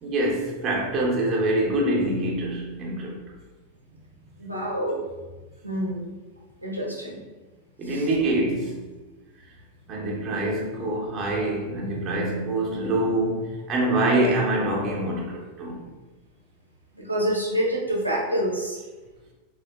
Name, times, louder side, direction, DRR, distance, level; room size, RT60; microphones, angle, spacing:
voice 1, 0.0-3.2 7.8-8.7 9.9-15.8, right 1 dB, 30° right, 0.7 m, -25 dB
voice 2, 4.4-5.0 5.6-6.1 6.6-7.2 7.8-8.0 17.0-18.8, equal, 90° right, 0.7 m, -27 dB
3.3 x 2.4 x 2.4 m
figure-of-eight pair, 90°, 0 cm